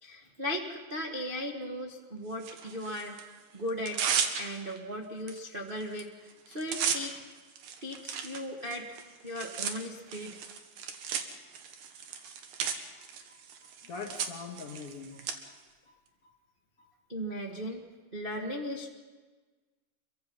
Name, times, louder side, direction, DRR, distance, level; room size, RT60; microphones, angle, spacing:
voice 1, 0.0-3.2 3.5-4.1 4.4-7.1 7.8-9.0 9.2-10.4 17.1-17.8 18.1-18.9, equal, 45° right, 0 dB, 0.6 m, -37 dB
Tearing, 2.4-3.2 3.7-4.8 5.3-5.4 5.7-6.0 6.3-15.3, right 7 dB, 70° right, 3.1 m, -35 dB
voice 2, 13.8-15.5 15.9-16.0 16.2-16.3 16.8-16.9, left 4 dB, 45° left, 2 dB, 3.3 m, -43 dB
27.5 x 23.0 x 5.6 m, 1.3 s
omnidirectional pair, 4.0 m